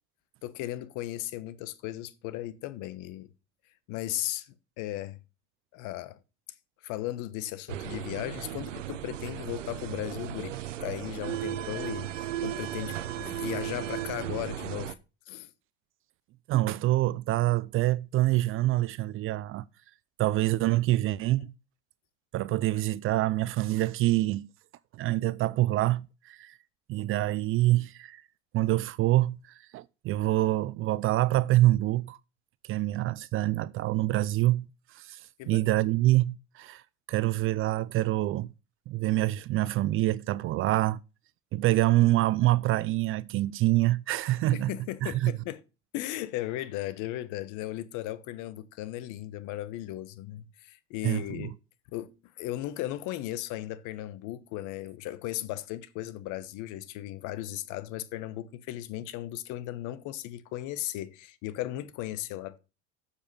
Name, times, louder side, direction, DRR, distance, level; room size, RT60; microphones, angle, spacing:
voice 1, 0.4-3.3 3.9-5.2 5.7-6.2 6.8-10.6 10.8-12.1 12.4-14.9 15.3-15.5 35.4-35.6 44.5-45.6 45.9-51.5 51.9-52.1 52.4-62.6, left 14 dB, 55° left, 1.1 m, -36 dB
sound 1, 7.7-14.9, right 12 dB, 90° right, 0.7 m, -36 dB
voice 2, 16.5-19.7 20.2-21.5 22.3-24.5 24.9-26.6 26.9-28.2 28.5-32.2 32.6-36.8 37.1-38.5 38.9-41.0 41.5-44.7 45.0-45.3 51.0-51.5, right 16 dB, 35° right, 0.4 m, -26 dB
7.3 x 7.0 x 5.4 m
hypercardioid pair, 85°, 36 cm